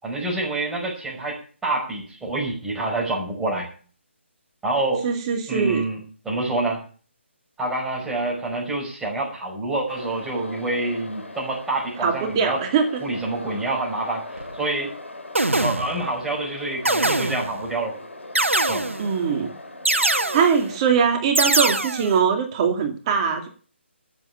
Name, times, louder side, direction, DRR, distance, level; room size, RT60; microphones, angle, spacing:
voice 1, 0.0-3.7 4.6-5.1 5.5-6.0 6.2-6.8 7.6-12.6 13.0-14.2 14.5-14.9 15.6-18.0 18.7-18.8, right 2 dB, 5° right, -3 dB, 5.1 m, -27 dB
voice 2, 5.0-5.8 12.0-12.9 19.0-19.5 20.3-23.5, right 6 dB, 25° right, 4 dB, 2.5 m, -21 dB
sound 1, 9.9-20.8, left 2 dB, 75° left, 5.6 m, -40 dB
sound 2, 14.4-14.5 15.3-16.1 16.8-17.6 18.3-19.2 19.8-20.7 21.3-22.2, right 2 dB, 80° right, 1.5 m, -23 dB
14.0 x 8.2 x 6.9 m, 0.40 s
figure-of-eight pair, 145°, 7 cm